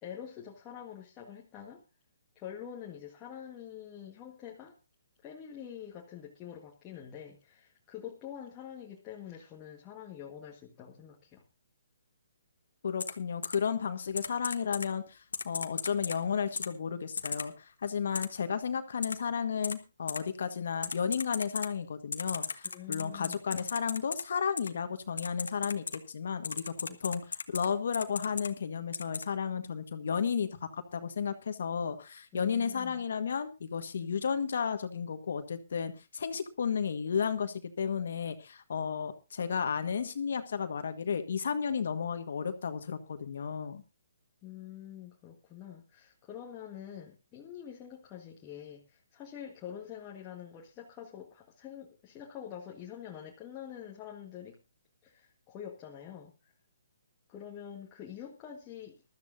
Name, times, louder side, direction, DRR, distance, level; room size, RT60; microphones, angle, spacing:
voice 1, 0.0-1.8 2.3-4.8 5.2-11.4 22.6-23.4 32.3-33.0 34.0-34.2 44.4-54.6 55.0-56.5 57.3-59.0, left 9 dB, 20° left, 1.6 m, -46 dB
voice 2, 12.8-26.7 27.0-43.8, left 6 dB, 65° left, 1.5 m, -33 dB
Typing, 13.0-13.1 13.4-13.6 14.2-14.9 15.3-16.2 16.6-16.7 17.2-17.5 18.1-18.3 19.0-19.1 19.6-19.8 20.1-20.2 20.8-21.7 22.1-24.2 24.6-24.7 25.2-26.0 26.4-27.7 27.9-28.5 28.9-29.2, left 4 dB, 90° left, 1.3 m, -35 dB
20.0 x 13.0 x 2.7 m
hypercardioid pair, 155°, 0 cm